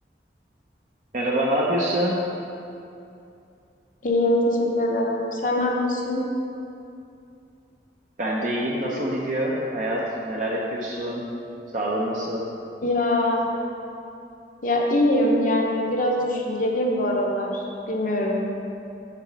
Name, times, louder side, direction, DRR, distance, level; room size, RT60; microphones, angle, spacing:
voice 1, 1.1-2.2 8.2-11.2 11.7-12.5, right 1 dB, 45° right, -4 dB, 0.6 m, -25 dB
voice 2, 4.0-6.2 12.8-13.5 14.6-18.5, left 1 dB, 45° left, 0 dB, 0.8 m, -23 dB
6.8 x 4.1 x 6.1 m, 2.6 s
head